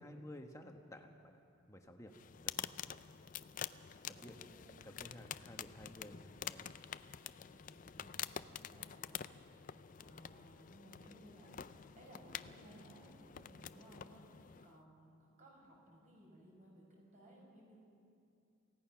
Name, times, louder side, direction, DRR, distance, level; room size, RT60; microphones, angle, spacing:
voice 1, 0.0-1.4 1.7-2.1 2.4-2.8 4.0-4.4 4.8-6.7 7.9-8.3, left 1 dB, 15° left, 4 dB, 1.3 m, -54 dB
sound 1, 2.1-14.8, left 9 dB, 40° left, 0.4 m, -48 dB
voice 2, 4.0-4.9 7.4-8.1 8.5-9.4 10.0-17.8, right 1 dB, 35° right, -2 dB, 5.4 m, -61 dB
28.5 x 17.0 x 5.9 m, 2.6 s
head